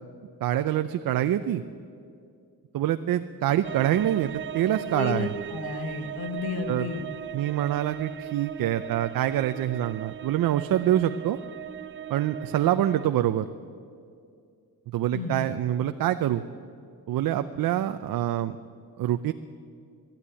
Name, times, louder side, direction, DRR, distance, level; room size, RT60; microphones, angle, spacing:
voice 1, 0.4-1.6 2.7-5.3 6.7-6.9 7.3-11.4 12.1-13.4 14.9-16.4 17.1-18.6 19.0-19.3, right 12 dB, 70° right, 9 dB, 0.7 m, -25 dB
sound 1, 3.6-13.0, right 11 dB, 35° right, 0.5 m, -38 dB
voice 2, 4.9-7.0 15.1-15.4, left 5 dB, 85° left, 6 dB, 1.7 m, -32 dB
20.0 x 13.5 x 9.8 m, 2.3 s
cardioid pair, 150°, 35 cm